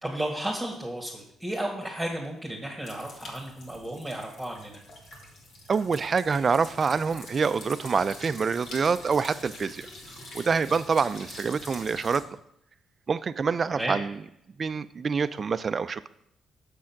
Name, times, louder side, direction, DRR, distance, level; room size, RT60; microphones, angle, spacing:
voice 1, 0.0-4.8 13.7-14.0, right 1 dB, 5° right, -1 dB, 1.8 m, -33 dB
sound 1, 2.8-12.2, left 2 dB, 70° left, 2.3 m, -45 dB
voice 2, 5.7-9.9 10.3-12.3 13.1-14.2 14.6-16.1, right 5 dB, 40° right, 14 dB, 0.5 m, -26 dB
7.0 x 6.3 x 5.8 m, 0.76 s
cardioid pair, 90°, 0 cm